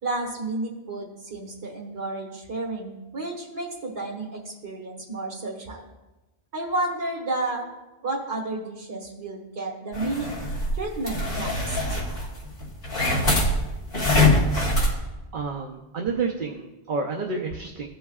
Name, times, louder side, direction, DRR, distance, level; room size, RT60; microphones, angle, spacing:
voice 1, 0.0-5.8 6.5-7.6 8.0-10.3 10.7-12.0, right 2 dB, 80° right, -2 dB, 1.7 m, -31 dB
sound 1, 9.9-14.9, left 1 dB, 55° left, 2.0 m, -24 dB
voice 2, 15.3-17.9, right 4 dB, 55° right, 1 dB, 0.8 m, -30 dB
15.5 x 5.4 x 2.4 m, 1.1 s
omnidirectional pair, 1.1 m